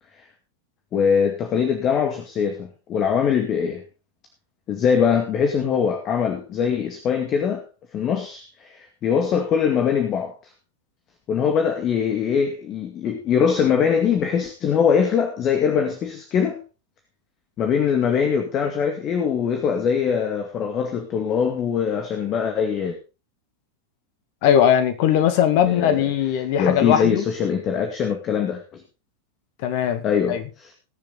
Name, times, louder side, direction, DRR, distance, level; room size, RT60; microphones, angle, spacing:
voice 1, 0.9-3.8 4.7-7.6 7.9-10.3 11.3-16.6 17.6-23.0 25.7-26.1 26.6-28.8 30.0-30.4, left 7 dB, 30° left, 2.1 m, -22 dB
voice 2, 24.4-27.2 29.6-30.4, left 9 dB, 45° left, 2.1 m, -19 dB
20.5 x 7.1 x 4.0 m
figure-of-eight pair, 90°, 0 cm